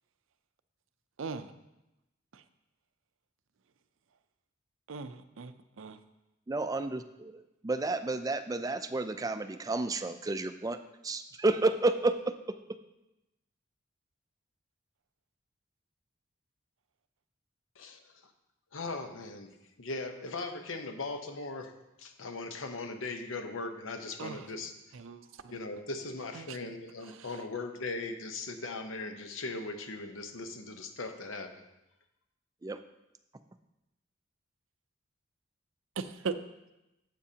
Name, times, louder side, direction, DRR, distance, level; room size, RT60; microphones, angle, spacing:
voice 1, 4.9-5.5 5.8-6.0 24.2-24.4 24.9-25.2 26.3-26.6 36.0-36.3, right 5 dB, 85° right, 11 dB, 0.5 m, -38 dB
voice 2, 6.5-10.8 11.0-12.1 32.6-32.8, right 2 dB, 20° right, 9 dB, 0.4 m, -31 dB
voice 3, 18.7-19.5 19.8-21.7 22.0-24.7 25.5-31.6, left 3 dB, 85° left, 6 dB, 0.9 m, -39 dB
12.0 x 7.6 x 2.8 m, 0.94 s
head